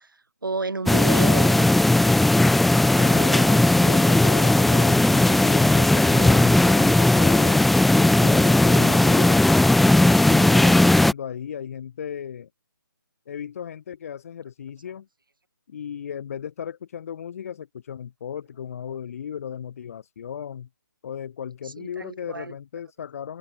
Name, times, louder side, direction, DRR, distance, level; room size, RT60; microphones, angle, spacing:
voice 1, 0.4-1.7 21.8-22.5, right 3 dB, 80° right, 7.1 m, -31 dB
sound 1, 0.9-11.1, left 2 dB, ahead, 0.3 m, -17 dB
voice 2, 3.0-9.5 10.2-12.5 13.3-15.1 15.7-20.7 21.0-23.4, left 8 dB, 45° left, 3.2 m, -36 dB
open air
figure-of-eight pair, 150°, 11 cm